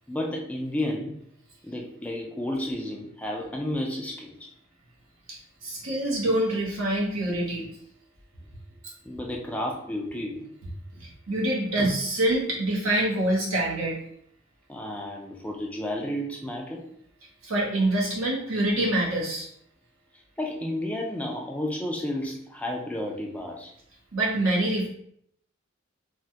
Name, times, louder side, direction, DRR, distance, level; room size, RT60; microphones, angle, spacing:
voice 1, 0.1-1.2 1.6-4.5 6.0-6.3 9.1-10.5 14.7-16.8 20.4-23.7, left 1 dB, 5° left, 0 dB, 0.3 m, -32 dB
voice 2, 5.3-7.7 10.9-14.0 17.4-19.5 24.1-24.9, right 1 dB, 90° right, -3 dB, 1.0 m, -26 dB
3.2 x 2.2 x 2.7 m, 0.68 s
head